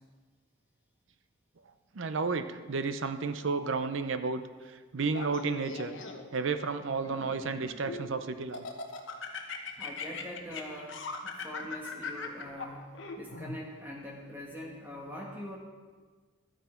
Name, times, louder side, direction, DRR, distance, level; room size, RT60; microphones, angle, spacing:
voice 1, 1.9-4.4 4.9-6.0 6.3-8.7, right 4 dB, 65° right, 10 dB, 0.6 m, -32 dB
Laughter, 5.1-6.4 7.0-8.1 8.5-13.6, left 4 dB, 60° left, 1.1 m, -40 dB
voice 2, 9.8-12.8 13.2-15.6, left 1 dB, 10° right, -2 dB, 1.2 m, -43 dB
12.0 x 9.1 x 4.5 m, 1.4 s
head